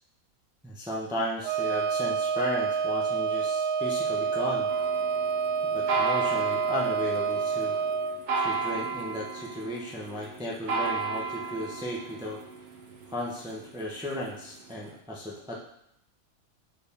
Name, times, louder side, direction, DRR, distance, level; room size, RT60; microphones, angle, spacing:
voice 1, 0.6-4.7 5.7-7.7 8.3-12.4 13.1-15.6, left 1 dB, 5° right, -4 dB, 0.4 m, -35 dB
Wind instrument woodwind instrument, 1.4-8.2, right 6 dB, 60° right, 0.9 m, -28 dB
sound 1, 4.7-14.9, right 4 dB, 85° right, 0.4 m, -34 dB
4.4 x 3.5 x 3.4 m, 0.78 s
omnidirectional pair, 1.5 m